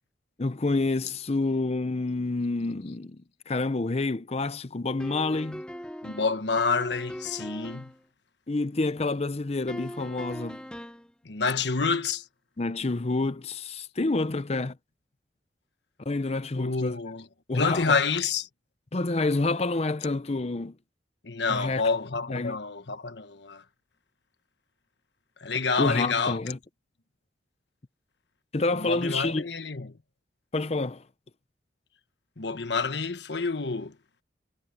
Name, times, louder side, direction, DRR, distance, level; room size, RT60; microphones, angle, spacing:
voice 1, 0.4-5.6 8.5-10.6 12.6-14.8 16.1-17.0 17.5-18.0 18.9-20.7 21.5-21.8 22.3-22.6 25.8-26.6 28.5-29.4 30.5-31.0, left 2 dB, 35° left, 0.7 m, -28 dB
sound 1, 5.0-8.0 9.7-11.1, equal, 5° left, 1.0 m, -40 dB
voice 2, 6.0-7.9 11.2-12.3 16.5-17.3 17.5-18.5 21.2-23.6 25.4-26.4 28.7-30.0 32.4-34.0, left 4 dB, 75° left, 1.3 m, -28 dB
head